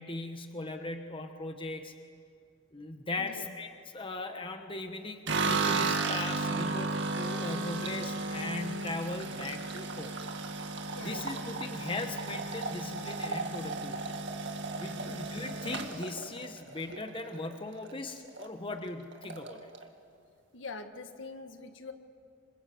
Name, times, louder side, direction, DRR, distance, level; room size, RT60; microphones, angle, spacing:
voice 1, 0.0-1.9 2.7-10.1 11.0-14.2 14.8-19.7, left 2 dB, 25° left, 6 dB, 1.2 m, -39 dB
voice 2, 3.2-3.5 10.9-11.4 15.0-15.3 20.5-21.9, left 3 dB, 60° left, 7 dB, 1.6 m, -44 dB
sound 1, 5.3-17.5 17.8-18.5 18.7-18.8 19.1-19.8, right 3 dB, 60° right, 2.0 m, -34 dB
26.5 x 26.5 x 7.8 m, 2.4 s
head